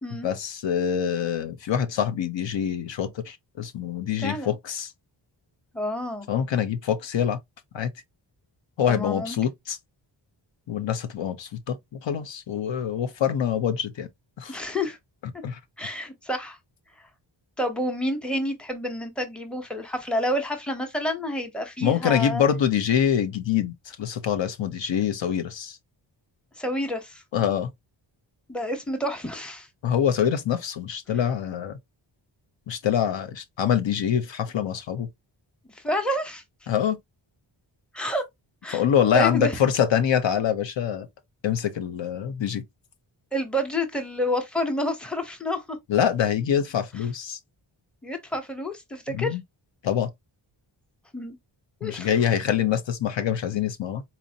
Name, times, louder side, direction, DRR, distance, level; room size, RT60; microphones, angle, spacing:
voice 1, 0.2-4.9 6.3-7.4 7.7-7.9 8.8-9.8 10.7-14.1 14.4-14.6 15.4-15.6 21.8-25.8 27.3-27.7 29.8-31.8 32.7-35.1 36.7-37.0 38.7-41.1 41.4-42.6 45.9-47.4 49.1-49.4 49.8-50.1 51.8-54.0, left 9 dB, 70° left, 0.7 m, -25 dB
voice 2, 4.2-4.5 5.7-6.3 8.9-9.4 14.5-15.0 15.8-16.6 17.6-22.4 26.6-27.2 28.5-29.7 35.7-36.4 37.9-38.2 38.6-38.8 39.1-39.6 43.3-45.8 48.0-49.4 51.1-51.4 51.8-52.3, equal, ahead, 0.7 m, -29 dB
4.2 x 2.6 x 2.7 m
wide cardioid pair, 150°, 46 cm